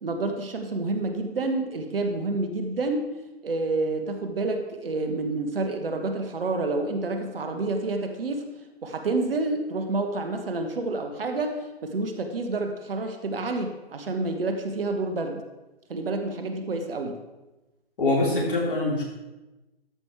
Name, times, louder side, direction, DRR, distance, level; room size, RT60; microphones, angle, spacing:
voice 1, 0.0-3.1 3.4-8.5 8.8-15.4 15.9-17.2, right 2 dB, 60° right, 5 dB, 1.4 m, -28 dB
voice 2, 18.0-19.0, left 2 dB, 55° left, -2 dB, 3.6 m, -24 dB
13.0 x 5.3 x 4.6 m, 1.1 s
figure-of-eight pair, 140°, 32 cm